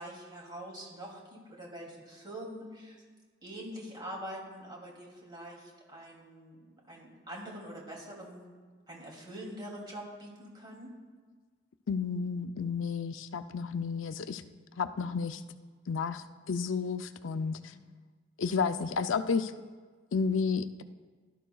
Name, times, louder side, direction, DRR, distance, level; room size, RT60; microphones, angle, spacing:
voice 1, 0.0-3.0 3.4-8.5 8.9-10.9 17.5-17.8, right 1 dB, 25° right, -2 dB, 2.7 m, -44 dB
voice 2, 11.9-14.4 14.8-15.4 15.9-17.7 18.4-19.5 20.1-20.8, left 5 dB, 85° left, 10 dB, 0.4 m, -31 dB
16.5 x 12.0 x 2.3 m, 1.5 s
head